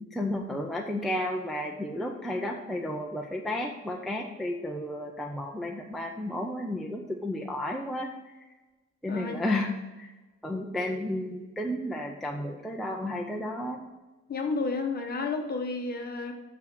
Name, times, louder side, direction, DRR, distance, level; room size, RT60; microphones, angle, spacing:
voice 1, 0.0-8.5 9.0-9.7 10.0-10.1 10.4-13.8, left 1 dB, ahead, -1 dB, 0.5 m, -32 dB
voice 2, 14.3-16.3, left 3 dB, 30° left, 3 dB, 1.1 m, -31 dB
6.4 x 5.9 x 6.6 m, 1.2 s
cardioid pair, 180°, 30 cm